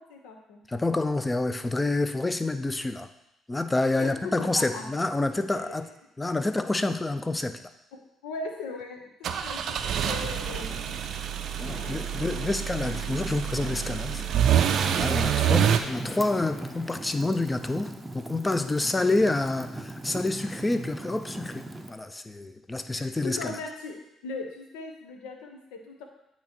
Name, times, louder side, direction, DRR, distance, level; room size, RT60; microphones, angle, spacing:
voice 1, 0.0-0.6 4.0-4.8 7.9-11.0 11.7-11.8 12.2-12.3 15.2-15.5 22.9-26.1, left 3 dB, 75° left, 3 dB, 0.8 m, -39 dB
voice 2, 0.7-3.1 3.5-5.9 6.2-7.6 9.4-9.6 11.6-14.2 14.9-23.6, left 2 dB, 20° left, 9 dB, 0.5 m, -28 dB
sound 1, 9.2-15.8, right 9 dB, 60° right, 0.4 m, -26 dB
sound 2, 10.4-21.8, left 2 dB, 60° left, 1.6 m, -46 dB
Fire, 15.4-21.9, right 2 dB, 20° right, 0.7 m, -40 dB
8.3 x 3.0 x 4.5 m, 0.83 s
hypercardioid pair, 50°, 0 cm